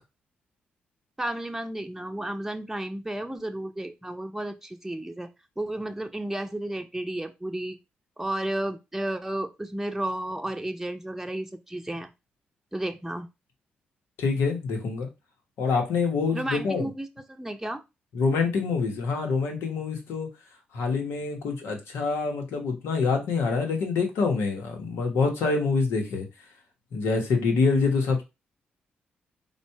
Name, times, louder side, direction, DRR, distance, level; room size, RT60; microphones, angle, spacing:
voice 1, 1.2-5.3 5.6-7.8 8.2-12.1 12.7-13.3 16.3-17.8, right 1 dB, 10° right, 5 dB, 0.8 m, -32 dB
voice 2, 14.2-15.1 15.6-16.9 18.1-20.3 20.7-26.3 26.9-28.2, left 4 dB, 80° left, 3 dB, 1.2 m, -26 dB
4.1 x 2.5 x 4.7 m, 0.25 s
supercardioid pair, 50°, 4 cm